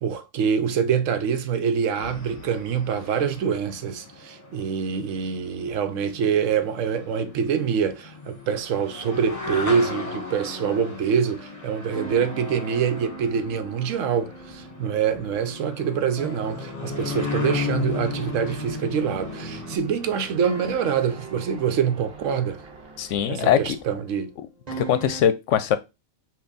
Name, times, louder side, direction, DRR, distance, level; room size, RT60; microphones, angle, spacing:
voice 1, 0.0-22.6 23.3-24.3, right 7 dB, 75° right, 1.0 m, -25 dB
sound 1, 1.9-19.8, left 4 dB, 30° left, 1.2 m, -35 dB
sound 2, 10.5-19.8 20.4-25.2, right 3 dB, 30° right, 1.6 m, -43 dB
Aircraft, 16.9-24.2, right 6 dB, 55° right, 1.1 m, -44 dB
voice 2, 23.0-23.8 24.8-25.8, left 9 dB, 70° left, 0.9 m, -21 dB
5.5 x 2.5 x 3.9 m
omnidirectional pair, 1.4 m